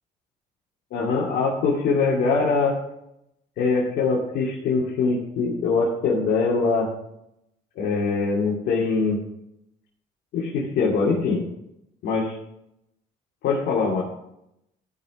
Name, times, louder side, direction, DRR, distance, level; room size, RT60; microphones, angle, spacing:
voice 1, 0.9-2.8 3.6-6.9 7.8-9.2 10.3-11.4 12.0-12.4 13.4-14.0, left 4 dB, 75° left, -5 dB, 2.6 m, -23 dB
14.5 x 6.0 x 5.0 m, 0.82 s
cardioid pair, 110°, 17 cm